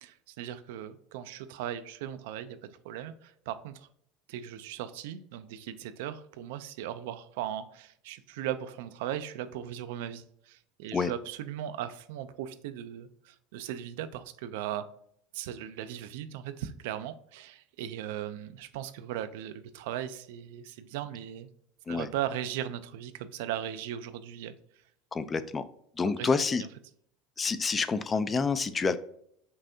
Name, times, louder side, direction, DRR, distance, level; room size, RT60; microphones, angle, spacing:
voice 1, 0.0-3.9 4.3-14.8 15.3-21.5 21.9-24.5 26.0-26.3, right 11 dB, 75° right, 12 dB, 0.3 m, -38 dB
voice 2, 25.1-25.6 26.0-26.7 27.4-29.0, left 4 dB, 25° left, 13 dB, 0.3 m, -28 dB
5.4 x 2.7 x 2.6 m, 0.69 s
supercardioid pair, 105°, 0 cm